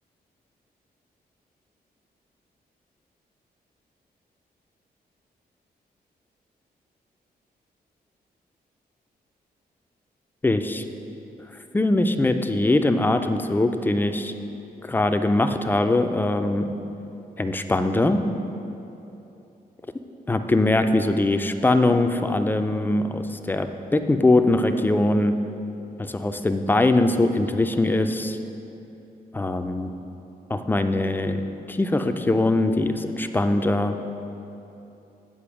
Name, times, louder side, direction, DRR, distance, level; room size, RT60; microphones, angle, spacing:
voice 1, 10.4-10.8 11.7-14.4 14.8-16.7 17.4-18.2 20.3-23.7 23.9-25.3 26.0-28.4 29.3-29.9 30.5-31.4 31.7-33.9, left 2 dB, 10° left, 7 dB, 0.3 m, -22 dB
8.5 x 5.2 x 6.2 m, 2.9 s
wide cardioid pair, 140°, 17 cm